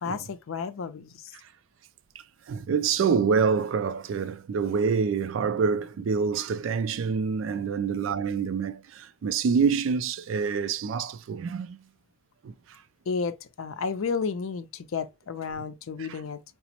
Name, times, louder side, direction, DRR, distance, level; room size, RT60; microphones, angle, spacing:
voice 1, 0.0-1.3 13.1-16.4, left 5 dB, 85° left, 0.5 m, -32 dB
voice 2, 2.5-11.8 12.4-12.8, right 5 dB, 70° right, 0.3 m, -26 dB
4.9 x 2.0 x 2.8 m
head